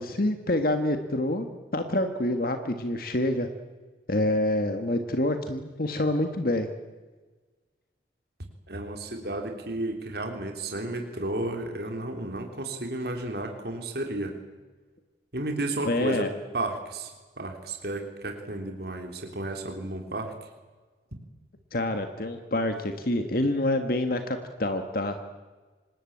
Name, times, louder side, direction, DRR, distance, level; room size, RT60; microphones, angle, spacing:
voice 1, 0.0-1.5 1.7-3.5 4.1-6.7 15.8-16.3 21.7-25.2, left 1 dB, 55° left, 7 dB, 1.7 m, -27 dB
voice 2, 8.7-14.3 15.3-16.2 16.5-17.1 17.4-20.3, right 2 dB, 60° right, 3 dB, 3.3 m, -32 dB
26.5 x 20.5 x 8.7 m, 1.3 s
head